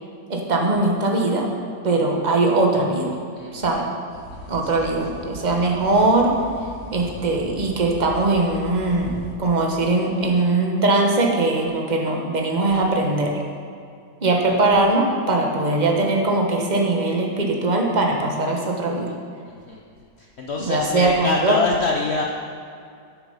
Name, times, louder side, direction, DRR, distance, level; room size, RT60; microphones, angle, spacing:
voice 1, 0.3-1.5 1.8-3.1 3.5-3.9 4.5-6.3 6.9-13.3 14.2-19.1 20.6-21.6, right 2 dB, 30° right, 1 dB, 1.1 m, -21 dB
common snipe, 4.1-9.3, right 1 dB, 60° right, 2.0 m, -39 dB
voice 2, 14.3-14.6 19.5-19.8 20.2-22.2, left 3 dB, 70° left, 1 dB, 0.6 m, -26 dB
11.0 x 7.0 x 5.5 m, 2.3 s
omnidirectional pair, 2.0 m